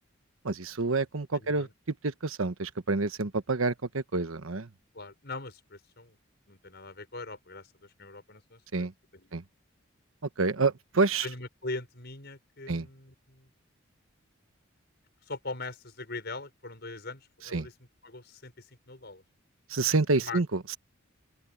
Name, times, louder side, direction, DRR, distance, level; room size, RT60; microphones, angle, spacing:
voice 1, 0.4-1.7 2.0-4.7 8.7-8.9 9.3-9.4 10.4-11.3 12.7-12.9 17.5-17.7 19.7-20.8, right 3 dB, 80° right, 1.1 m, -28 dB
voice 2, 1.3-1.7 4.9-6.2 6.5-8.9 9.1-9.4 11.2-13.5 15.3-17.7 18.0-19.2 20.1-20.4, left 3 dB, 55° left, 6.3 m, -41 dB
open air
head